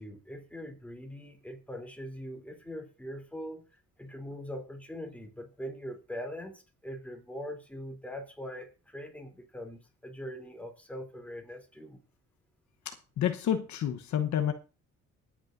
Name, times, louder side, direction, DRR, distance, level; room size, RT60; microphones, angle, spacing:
voice 1, 0.0-3.6 4.0-12.0, equal, 5° left, 3.3 m, -42 dB
voice 2, 12.8-14.5, left 9 dB, 70° left, 1.1 m, -29 dB
23.5 x 8.7 x 2.6 m
cardioid pair, 90°, 30 cm